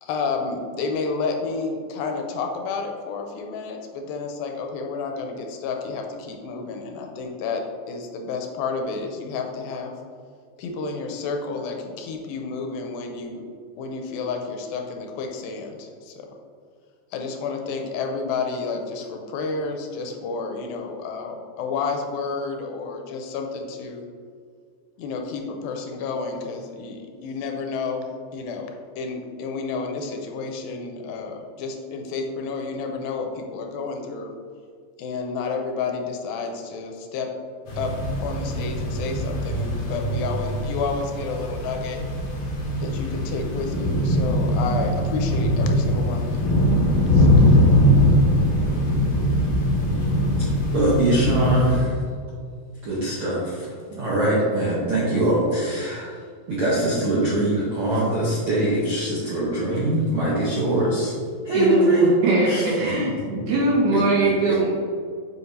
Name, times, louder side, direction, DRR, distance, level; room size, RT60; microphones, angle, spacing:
voice 1, 0.0-7.6 7.9-9.9 10.6-13.4 13.8-16.3 17.1-24.0 25.0-28.1 28.3-28.7 29.0-34.3 35.0-37.3 37.8-37.9 38.2-42.0 42.8-46.5 47.1-47.7, left 4 dB, 85° left, 3 dB, 2.4 m, -30 dB
sound 1, 37.7-51.8, equal, 70° left, 2.4 m, -21 dB
voice 2, 50.4-52.0 52.8-53.7 54.0-56.1 56.5-61.1 61.4-62.9 63.3-63.4 63.9-64.6, right 1 dB, 85° right, -7 dB, 1.2 m, -22 dB
voice 3, 61.5-63.1 63.5-64.7, right 2 dB, 65° right, -5 dB, 2.7 m, -21 dB
7.7 x 5.2 x 2.7 m, 2.1 s
omnidirectional pair, 4.1 m